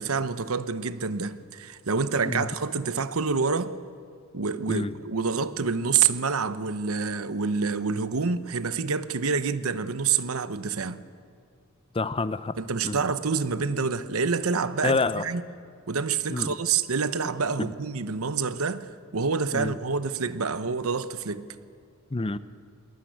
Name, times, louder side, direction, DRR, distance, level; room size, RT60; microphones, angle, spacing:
voice 1, 0.0-3.7 4.3-11.0 12.6-15.4 15.9-21.5, right 5 dB, 75° right, 0.9 m, -27 dB
voice 2, 11.9-12.5 12.9-13.0 14.8-15.2 16.3-16.5 17.6-17.7 19.5-19.7 22.1-22.4, left 3 dB, 25° left, 0.6 m, -27 dB
21.5 x 20.0 x 9.2 m
head